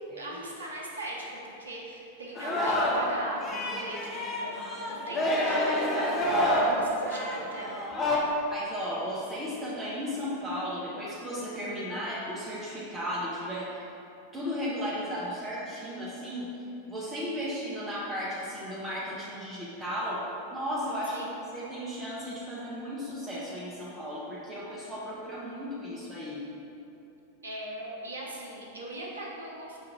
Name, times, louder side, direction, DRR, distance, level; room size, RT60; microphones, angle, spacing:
voice 1, 0.2-7.8 21.1-21.3 27.4-29.8, right 1 dB, 75° right, -3 dB, 0.6 m, -40 dB
Singing, 2.3-3.1 3.4-8.2, left 1 dB, 25° left, 0.6 m, -28 dB
voice 2, 8.5-13.8 14.3-16.5 16.9-20.2 20.5-26.4, equal, 10° right, -8 dB, 0.6 m, -35 dB
5.5 x 2.5 x 2.9 m, 2.8 s
figure-of-eight pair, 90°, 0 cm